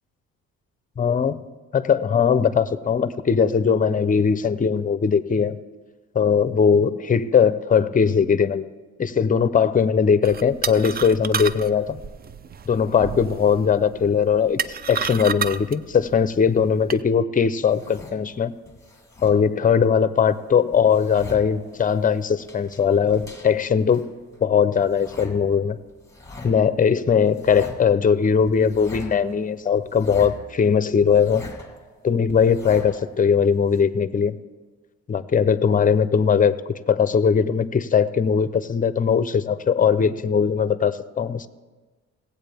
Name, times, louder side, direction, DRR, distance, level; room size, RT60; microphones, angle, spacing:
voice 1, 1.0-1.4 1.7-5.6 6.1-8.7 9.0-12.0 12.7-14.6 14.9-18.5 19.2-24.1 24.4-25.8 26.4-31.5 32.0-34.4 35.1-41.5, left 6 dB, 25° left, 14 dB, 0.6 m, -20 dB
sound 1, 10.2-17.0, right 6 dB, 30° right, 0.4 m, -31 dB
sound 2, 17.7-19.7 20.0-33.8, left 2 dB, 10° left, 1.4 m, -43 dB
18.0 x 8.3 x 3.5 m, 1.3 s
cardioid pair, 90°, 30 cm